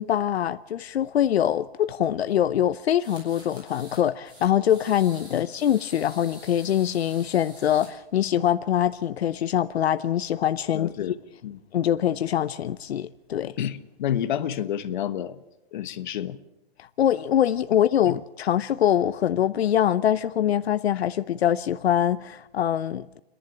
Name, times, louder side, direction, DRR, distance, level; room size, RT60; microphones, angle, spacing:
voice 1, 0.0-10.9 11.7-13.5 16.8-23.2, left 10 dB, 85° left, 0.8 m, -24 dB
sound 1, 3.0-4.0 4.3-7.9, right 1 dB, 15° right, 6.5 m, -48 dB
voice 2, 10.7-11.2 11.4-11.6 13.4-15.4 15.7-16.4, left 10 dB, 50° left, 1.3 m, -29 dB
29.0 x 11.0 x 8.9 m
hypercardioid pair, 170°, 31 cm